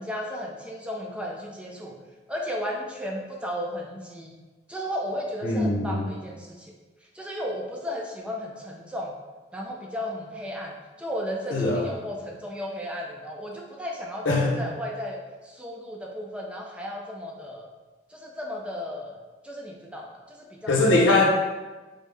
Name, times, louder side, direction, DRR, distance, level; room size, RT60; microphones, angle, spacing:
voice 1, 0.0-1.9 2.3-4.4 4.7-6.7 7.1-9.1 9.5-10.7 11.0-17.7 18.1-19.1 19.4-20.8, equal, 5° right, -1 dB, 0.4 m, -34 dB
voice 2, 5.4-6.1 11.5-11.8 14.2-14.6 20.7-21.2, left 2 dB, 85° left, -2 dB, 0.8 m, -21 dB
5.3 x 2.0 x 3.3 m, 1.2 s
head